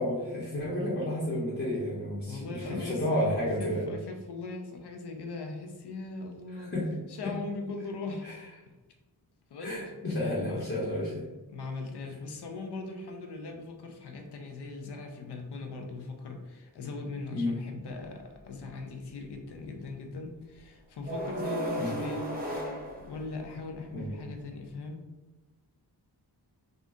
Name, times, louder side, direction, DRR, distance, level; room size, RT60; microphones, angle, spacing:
voice 1, 0.0-3.8 6.5-6.9 7.2-7.3 8.2-8.4 9.6-11.2 17.3-17.6 21.8-21.9 23.9-24.1, left 1 dB, 30° left, -8 dB, 0.8 m, -31 dB
voice 2, 2.3-6.7 7.1-8.3 9.5-10.7 11.5-22.3 23.1-25.0, left 3 dB, 80° left, 3 dB, 0.6 m, -40 dB
sound 1, 21.1-23.7, right 1 dB, 25° right, 0.7 m, -35 dB
2.6 x 2.5 x 3.5 m, 1.2 s
wide cardioid pair, 120°, 40 cm